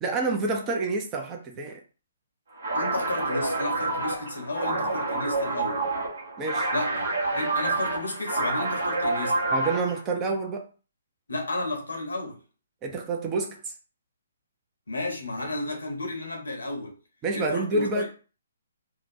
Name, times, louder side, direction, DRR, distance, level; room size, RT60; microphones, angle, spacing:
voice 1, 0.0-1.8 6.4-6.7 9.5-10.6 12.8-13.7 17.2-18.1, right 3 dB, 20° right, 0.6 m, -28 dB
sound 1, 2.6-10.0, right 2 dB, 65° right, 0.9 m, -28 dB
voice 2, 2.7-5.9 6.7-7.1 7.3-9.4 11.3-12.4 14.9-17.0 17.3-18.1, left 2 dB, 80° left, 0.9 m, -32 dB
2.8 x 2.2 x 2.6 m
figure-of-eight pair, 135°, 0 cm